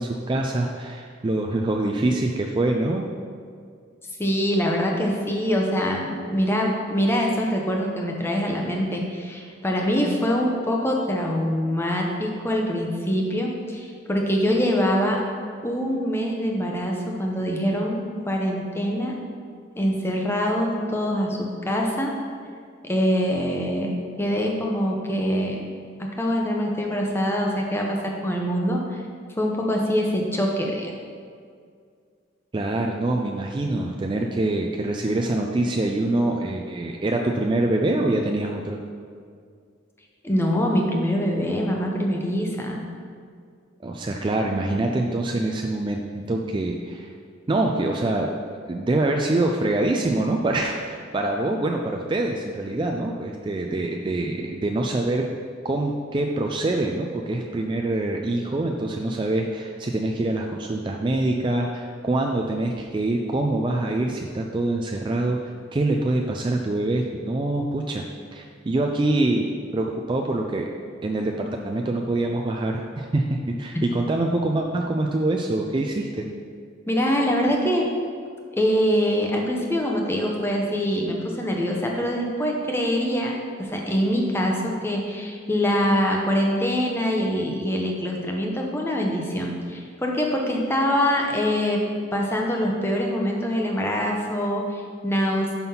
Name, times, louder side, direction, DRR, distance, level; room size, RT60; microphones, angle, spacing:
voice 1, 0.0-3.1 32.5-38.8 43.8-47.1 47.5-48.3 48.7-55.3 55.6-65.4 65.7-68.0 68.3-70.7 71.0-76.2, right 2 dB, 25° right, 1 dB, 0.3 m, -25 dB
voice 2, 4.2-15.2 15.6-19.2 19.8-22.2 22.8-25.6 26.0-29.0 29.4-30.9 40.2-42.9 76.9-77.9 78.5-91.8 92.1-95.5, equal, 10° left, 0 dB, 0.7 m, -24 dB
5.9 x 5.6 x 5.5 m, 2.2 s
head